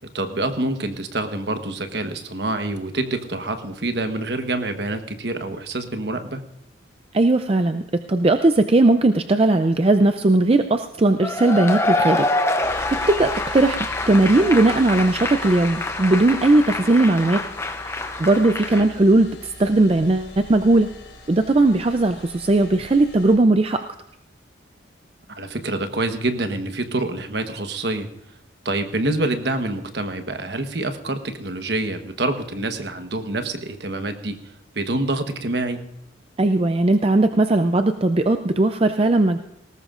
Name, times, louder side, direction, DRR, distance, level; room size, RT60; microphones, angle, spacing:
voice 1, 0.1-6.4 18.7-18.9 25.4-28.1 28.6-34.4 34.7-35.8, right 2 dB, 60° right, 7 dB, 1.1 m, -26 dB
voice 2, 7.1-12.3 12.5-13.8 14.1-17.5 17.8-20.9 21.3-23.8 36.4-39.4, right 2 dB, 30° right, 8 dB, 0.4 m, -18 dB
Cheering / Applause / Crowd, 11.2-18.9, left 2 dB, 15° left, 0.6 m, -26 dB
sound 1, 12.6-23.4, left 3 dB, 90° left, 3.6 m, -40 dB
20.0 x 18.0 x 2.5 m, 0.79 s
head